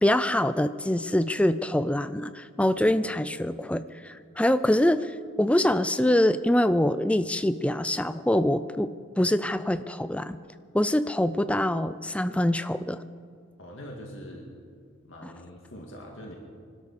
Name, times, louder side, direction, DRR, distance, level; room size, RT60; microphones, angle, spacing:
voice 1, 0.0-10.4 10.7-13.0 15.2-15.3, left 1 dB, 5° left, 13 dB, 0.3 m, -24 dB
voice 2, 13.6-14.5 15.0-16.4, equal, 65° left, -1 dB, 2.0 m, -43 dB
25.0 x 12.5 x 4.2 m, 2.2 s
head